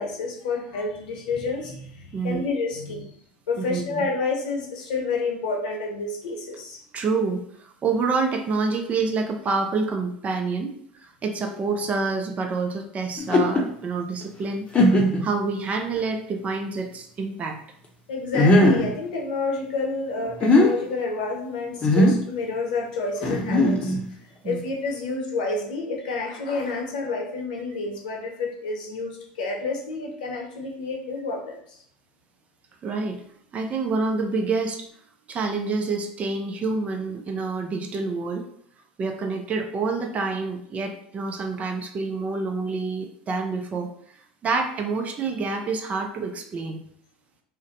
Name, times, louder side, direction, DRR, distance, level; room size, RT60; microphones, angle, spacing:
voice 1, 0.0-3.1 3.5-6.8 14.8-15.0 18.1-24.0 24.4-31.8, left 3 dB, 75° left, 1 dB, 0.7 m, -29 dB
voice 2, 2.1-2.5 3.6-4.1 6.9-10.7 11.0-14.6 15.2-17.6 24.4-24.6 32.8-33.2 33.5-34.9 35.3-38.4 39.0-43.9 44.4-46.8, right 4 dB, 30° right, 4 dB, 0.5 m, -27 dB
sound 1, 13.2-13.6 14.2-14.3 14.7-15.3 16.0-16.1 18.3-18.9 20.2-20.7 21.8-22.2 23.2-24.1, left 1 dB, 25° left, 0.7 m, -18 dB
2.5 x 2.2 x 3.8 m, 0.66 s
hypercardioid pair, 80°, 4 cm